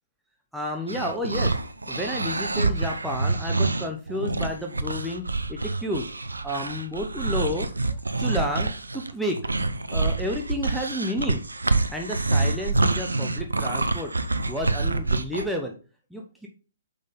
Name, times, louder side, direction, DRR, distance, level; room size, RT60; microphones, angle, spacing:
voice 1, 0.5-1.5 1.9-5.2 5.5-6.0 6.4-7.7 8.2-9.4 9.9-11.4 11.9-14.1 14.4-15.7 16.1-16.5, equal, ahead, 0 dB, 0.9 m, -31 dB
sound 1, 0.9-15.4, right 3 dB, 80° right, 0.7 m, -26 dB
6.6 x 5.2 x 3.8 m, 0.35 s
figure-of-eight pair, 125°, 0 cm